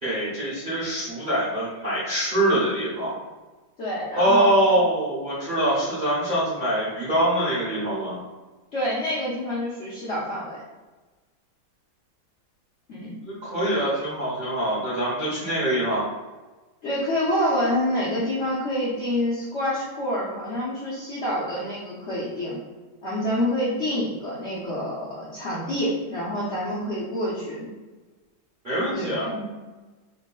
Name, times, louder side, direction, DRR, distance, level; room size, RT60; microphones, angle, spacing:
voice 1, 0.0-3.2 4.1-8.2 13.2-16.1 28.6-29.3, right 1 dB, 35° right, -9 dB, 0.8 m, -24 dB
voice 2, 3.8-4.5 8.7-10.6 12.9-13.2 16.8-22.6 23.0-27.7 28.9-29.4, left 1 dB, 70° left, -9 dB, 0.6 m, -27 dB
3.9 x 3.1 x 2.3 m, 1.2 s
omnidirectional pair, 2.4 m